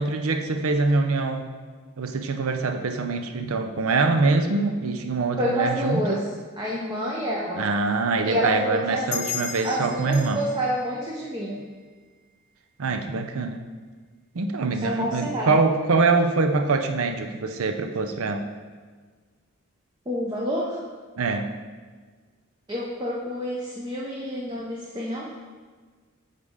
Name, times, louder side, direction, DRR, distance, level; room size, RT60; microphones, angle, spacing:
voice 1, 0.0-1.5 2.0-6.2 7.6-10.4 12.8-13.7 14.3-18.5 21.2-21.5, right 3 dB, 70° right, 6 dB, 0.5 m, -24 dB
voice 2, 5.4-6.2 6.6-7.7 8.2-9.1 9.6-11.6 14.6-15.6 20.1-20.8 22.7-25.4, equal, 20° right, -4 dB, 0.6 m, -28 dB
sound 1, 9.1-12.2, left 7 dB, 50° left, 0.8 m, -36 dB
8.1 x 4.1 x 3.6 m, 1.5 s
head